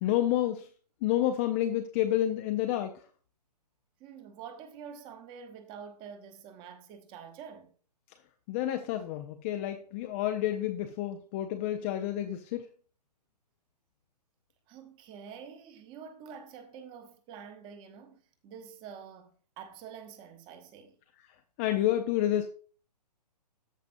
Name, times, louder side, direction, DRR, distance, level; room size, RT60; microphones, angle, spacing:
voice 1, 0.0-0.7 1.0-2.9 8.5-12.7 21.6-22.5, left 12 dB, 20° left, 0.4 m, -29 dB
voice 2, 4.0-7.7 14.7-21.0, right 7 dB, 20° right, 1.0 m, -47 dB
13.5 x 5.2 x 2.6 m
figure-of-eight pair, 130°, 21 cm